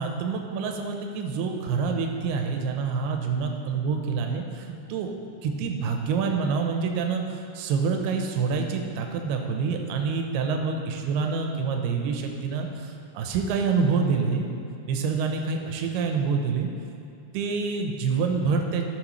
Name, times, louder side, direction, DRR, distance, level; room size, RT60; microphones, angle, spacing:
voice 1, 0.0-5.1 5.4-14.5 14.9-16.7 17.3-18.9, right 5 dB, 85° right, 3 dB, 2.7 m, -27 dB
13.5 x 6.4 x 3.1 m, 2.7 s
omnidirectional pair, 4.6 m